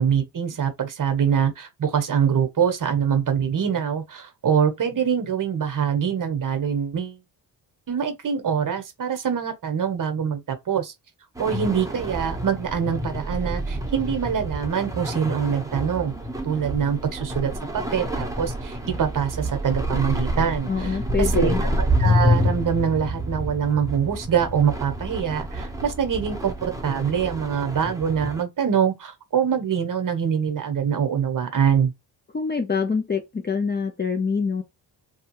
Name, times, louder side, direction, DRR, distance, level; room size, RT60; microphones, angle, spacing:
voice 1, 0.0-7.2 7.9-10.9 11.4-16.1 16.4-21.5 22.0-31.9, right 7 dB, 45° right, 0.9 m, -24 dB
sound 1, 11.4-28.4, equal, 5° right, 0.8 m, -28 dB
voice 2, 20.7-21.6 32.3-34.6, left 5 dB, 20° left, 0.6 m, -25 dB
2.7 x 2.3 x 2.9 m
cardioid pair, 65°, 47 cm